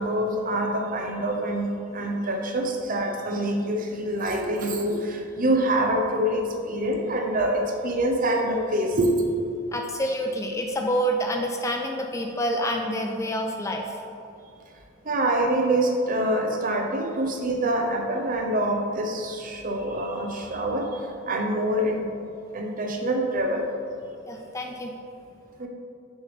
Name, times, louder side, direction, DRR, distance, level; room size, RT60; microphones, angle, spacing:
voice 1, 0.0-1.7 1.9-9.2 15.1-20.9 21.3-22.1 22.5-23.6 25.6-25.7, right 1 dB, 40° right, 2 dB, 0.8 m, -25 dB
voice 2, 9.7-14.0 24.3-24.9, equal, 15° left, 2 dB, 0.3 m, -27 dB
6.6 x 6.4 x 3.4 m, 2.5 s
head